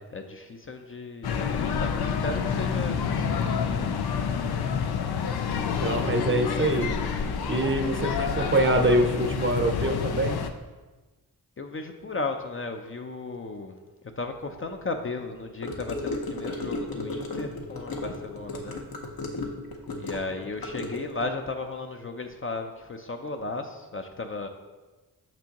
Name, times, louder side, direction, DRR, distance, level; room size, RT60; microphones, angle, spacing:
voice 1, 0.1-4.0 11.6-13.8 14.2-18.8 20.0-24.5, left 3 dB, 35° left, 5 dB, 0.4 m, -35 dB
sound 1, 1.2-10.5, left 6 dB, 90° left, 0.5 m, -28 dB
voice 2, 5.8-6.9 7.5-10.4, right 1 dB, 30° right, 5 dB, 0.6 m, -24 dB
Gurgling / Car passing by / Sink (filling or washing), 15.6-21.3, left 2 dB, 65° left, 0.9 m, -34 dB
6.1 x 6.0 x 2.9 m, 1.2 s
wide cardioid pair, 85°, 38 cm